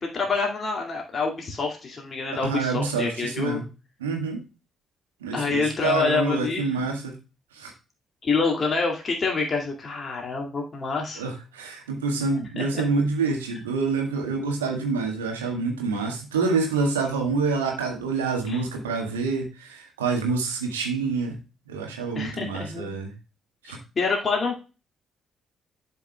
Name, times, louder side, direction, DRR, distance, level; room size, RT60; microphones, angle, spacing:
voice 1, 0.0-3.6 5.3-6.6 8.2-11.2 12.6-12.8 18.5-18.6 22.1-23.0 23.6-24.6, left 4 dB, 40° left, 0 dB, 2.2 m, -27 dB
voice 2, 2.4-3.6 4.0-4.4 5.2-7.2 7.5-7.7 11.2-21.4 21.7-23.1 23.6-23.8, right 4 dB, 80° right, 1 dB, 1.8 m, -27 dB
11.5 x 5.6 x 2.2 m, 0.31 s
figure-of-eight pair, 40°, 0 cm